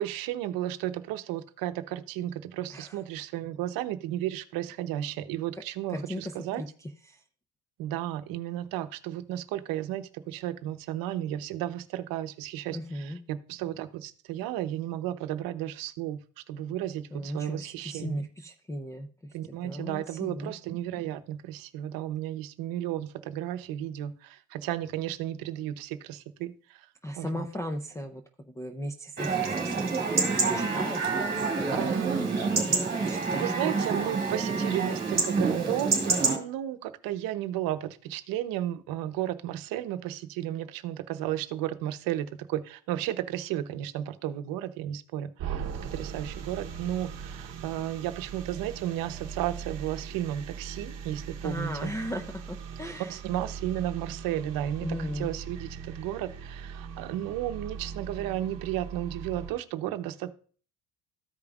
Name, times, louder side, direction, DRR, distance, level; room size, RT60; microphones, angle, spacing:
voice 1, 0.0-6.6 7.8-16.2 16.5-18.3 19.3-26.8 27.2-27.5 31.7-32.3 33.3-51.9 53.1-60.3, right 12 dB, 75° right, 10 dB, 0.8 m, -33 dB
voice 2, 5.9-7.2 12.7-13.2 17.1-19.4 19.6-20.5 27.0-31.9 32.7-33.6 51.4-53.2 54.8-55.3, equal, 10° left, 0 dB, 0.5 m, -37 dB
Chatter / Livestock farm animals working animals / Chirp tweet, 29.2-36.4, right 4 dB, 25° right, 2.1 m, -27 dB
sound 1, 45.4-59.5, right 6 dB, 50° right, 0.9 m, -40 dB
14.0 x 5.2 x 2.4 m, 0.43 s
cardioid pair, 140°, 35 cm